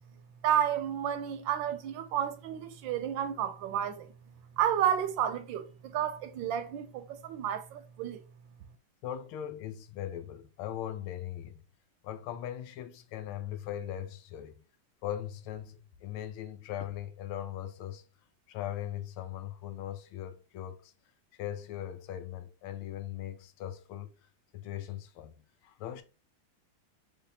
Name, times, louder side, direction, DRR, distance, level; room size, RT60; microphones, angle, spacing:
voice 1, 0.4-4.1 4.6-8.2, right 9 dB, 75° right, 1.3 m, -31 dB
voice 2, 9.0-11.6 12.0-14.6 15.0-18.0 18.5-20.9 21.3-24.1 24.5-25.3 25.6-26.0, left 11 dB, 90° left, 1.5 m, -39 dB
5.2 x 3.3 x 2.8 m
omnidirectional pair, 2.3 m